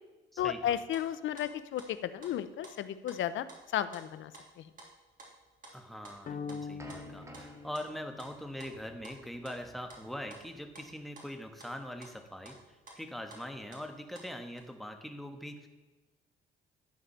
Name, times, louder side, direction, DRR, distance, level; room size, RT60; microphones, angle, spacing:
voice 1, 0.4-3.5 3.7-4.3 4.6-4.7, left 11 dB, 75° left, 14 dB, 0.7 m, -33 dB
sound 1, 0.9-2.3 2.6-2.8 3.1-3.2 3.5-4.0 4.3-14.6, right 2 dB, 45° right, 3.0 m, -53 dB
voice 2, 5.7-12.6 12.9-15.7, equal, ahead, 5 dB, 1.3 m, -42 dB
sound 2, 6.0-11.0, right 1 dB, 15° right, 1.5 m, -55 dB
sound 3, 6.3-8.6, left 5 dB, 45° left, 0.9 m, -43 dB
11.5 x 5.0 x 7.2 m, 1.2 s
cardioid pair, 90°, 20 cm